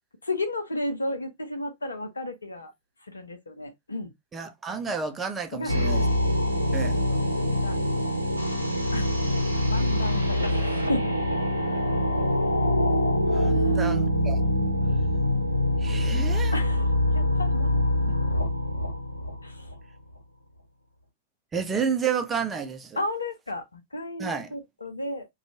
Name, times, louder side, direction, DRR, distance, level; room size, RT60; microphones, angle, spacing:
voice 1, 0.2-2.7 3.1-4.1 5.5-6.1 7.0-8.2 8.9-9.4 9.7-11.2 13.5-13.8 16.5-18.2 19.4-19.7 23.0-25.3, left 1 dB, 80° left, 0.6 m, -34 dB
voice 2, 4.3-6.1 6.7-7.0 13.3-14.4 15.8-16.6 21.5-23.0 24.2-24.5, right 6 dB, 20° right, 0.6 m, -30 dB
sound 1, 5.7-19.8, left 1 dB, 90° right, 0.7 m, -24 dB
2.5 x 2.3 x 2.8 m
figure-of-eight pair, 95°, 0 cm